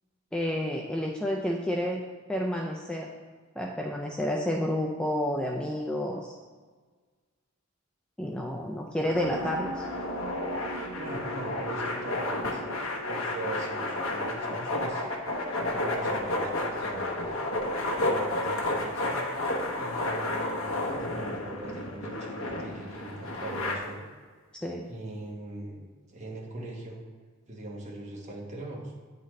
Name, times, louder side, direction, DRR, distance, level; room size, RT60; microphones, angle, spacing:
voice 1, 0.3-2.0 2.3-3.1 3.6-6.3 8.2-9.9 24.5-24.9, left 1 dB, 5° left, -1 dB, 0.3 m, -30 dB
sound 1, 9.0-23.7, left 2 dB, 65° left, 1.0 m, -32 dB
sound 2, 9.2-19.1, equal, 70° right, 0.8 m, -42 dB
voice 2, 11.0-12.6 13.1-15.1 15.5-17.3 18.0-19.2 19.8-24.0 24.9-27.0 27.5-28.9, right 2 dB, 35° right, -2 dB, 1.1 m, -40 dB
9.0 x 4.0 x 3.1 m, 1.5 s
head